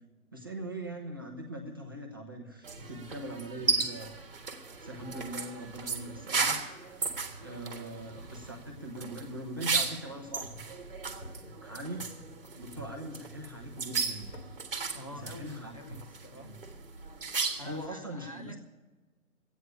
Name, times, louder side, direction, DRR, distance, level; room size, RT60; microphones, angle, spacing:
voice 1, 0.3-4.1 4.8-6.6 7.4-10.6 11.6-12.1 12.6-14.4 15.1-15.7 16.3-16.6 17.7-18.6, right 1 dB, 15° right, 0 dB, 0.7 m, -41 dB
sound 1, 2.6-17.8, right 4 dB, 40° right, 1.5 m, -36 dB
sound 2, 2.8-16.0, equal, 40° left, 2.5 m, -53 dB
voice 2, 7.5-8.1 8.4-8.9 14.9-16.6 17.6-18.6, left 1 dB, 25° left, 2 dB, 0.7 m, -48 dB
13.0 x 9.2 x 9.9 m, 1.3 s
figure-of-eight pair, 145°, 44 cm